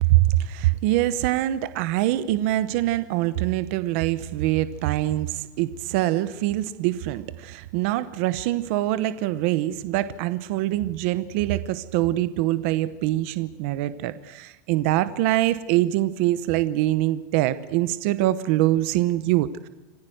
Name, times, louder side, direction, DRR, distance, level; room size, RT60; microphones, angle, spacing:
voice 1, 0.0-19.7, right 15 dB, 45° right, 14 dB, 0.9 m, -24 dB
26.5 x 15.5 x 7.9 m, 1.1 s
supercardioid pair, 175°, 10 cm